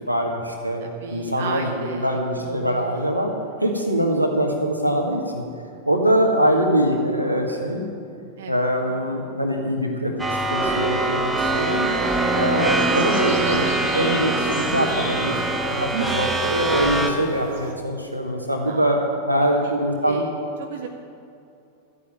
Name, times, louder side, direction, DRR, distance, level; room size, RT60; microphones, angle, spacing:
voice 1, 0.1-0.8 1.1-3.3 3.6-5.4 5.9-7.8 8.5-10.1 10.5-11.9 12.4-15.3 15.7-15.9 16.2-19.0 19.3-20.3, right 1 dB, 90° right, 1 dB, 1.9 m, -23 dB
voice 2, 0.8-2.9 8.4-9.0 15.9-16.4 18.7-19.0 19.6-19.8 20.0-20.9, right 7 dB, 55° right, 4 dB, 0.8 m, -34 dB
sound 1, 10.2-17.1, right 2 dB, 5° right, 1.5 m, -23 dB
sound 2, 11.5-17.7, left 3 dB, 55° left, 2.3 m, -38 dB
13.5 x 8.5 x 8.5 m, 2.5 s
figure-of-eight pair, 90°, 0 cm